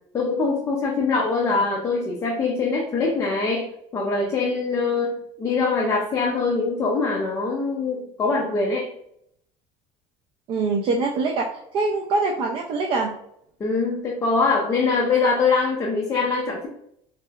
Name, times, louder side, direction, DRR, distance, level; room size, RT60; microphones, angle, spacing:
voice 1, 0.1-8.9 13.6-16.7, left 4 dB, 20° left, -2 dB, 0.4 m, -23 dB
voice 2, 10.5-11.5 11.7-13.1, right 3 dB, 40° right, 1 dB, 0.4 m, -23 dB
3.2 x 2.8 x 2.3 m, 0.74 s
cardioid pair, 165°, 13 cm